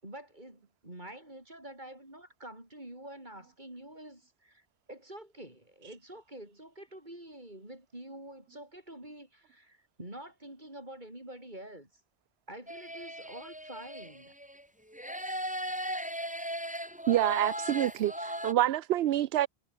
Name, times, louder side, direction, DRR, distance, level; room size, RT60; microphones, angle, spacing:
voice 1, 0.0-11.9 12.5-14.3, right 1 dB, 45° right, 7.6 m, -47 dB
sound 1, 12.7-14.6 14.9-18.5, equal, 5° right, 5.0 m, -37 dB
voice 2, 17.1-19.5, right 13 dB, 70° right, 0.8 m, -27 dB
omnidirectional pair, 1.1 m